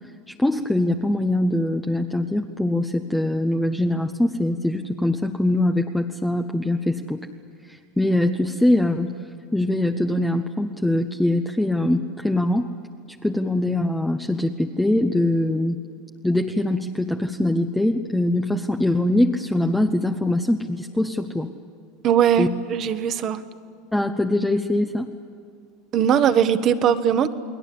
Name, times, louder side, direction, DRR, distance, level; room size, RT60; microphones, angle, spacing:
voice 1, 0.3-7.3 7.7-9.1 9.5-12.7 13.2-15.8 16.2-21.5 22.4-22.5 23.9-25.1, left 1 dB, 5° left, 4 dB, 1.0 m, -22 dB
voice 2, 22.0-23.4 25.9-27.3, right 8 dB, 40° right, 11 dB, 1.3 m, -20 dB
29.5 x 20.0 x 8.6 m, 2.4 s
supercardioid pair, 125°, 0 cm